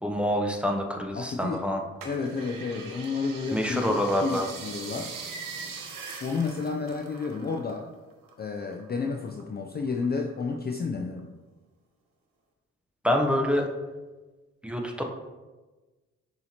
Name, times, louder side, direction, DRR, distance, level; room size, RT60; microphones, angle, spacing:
voice 1, 0.0-1.8 3.5-4.5 13.0-13.7 14.6-15.0, equal, 5° right, 2 dB, 0.7 m, -26 dB
voice 2, 1.1-1.6 2.0-5.2 6.2-7.9 8.4-11.3, left 4 dB, 30° left, 3 dB, 0.4 m, -31 dB
sound 1, 2.0-7.8 8.1-9.4 9.9-10.7 11.2-11.3, right 4 dB, 70° right, 0.8 m, -42 dB
6.1 x 2.9 x 2.8 m, 1.2 s
supercardioid pair, 45°, 34 cm